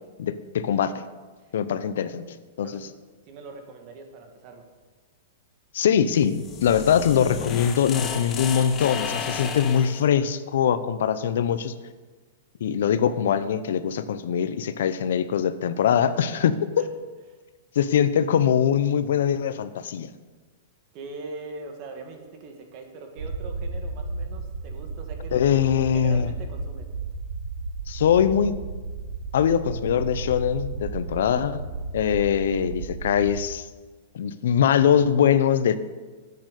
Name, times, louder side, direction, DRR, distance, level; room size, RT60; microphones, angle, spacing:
voice 1, 0.2-1.0 1.5-2.7 5.7-11.7 12.6-16.8 17.8-20.1 25.3-26.3 27.9-28.6 29.3-31.6 31.9-33.6 34.1-35.8, left 8 dB, 75° left, 13 dB, 0.7 m, -22 dB
voice 2, 2.6-2.9 3.2-4.7 16.8-16.9 20.9-25.4 25.9-26.9, right 3 dB, 45° right, 4 dB, 2.0 m, -41 dB
sound 1, 6.2-10.0, left 7 dB, 25° left, 1.1 m, -33 dB
sound 2, 23.2-33.4, right 3 dB, 85° right, 1.3 m, -34 dB
10.0 x 8.7 x 6.6 m, 1.3 s
hypercardioid pair, 135°, 0 cm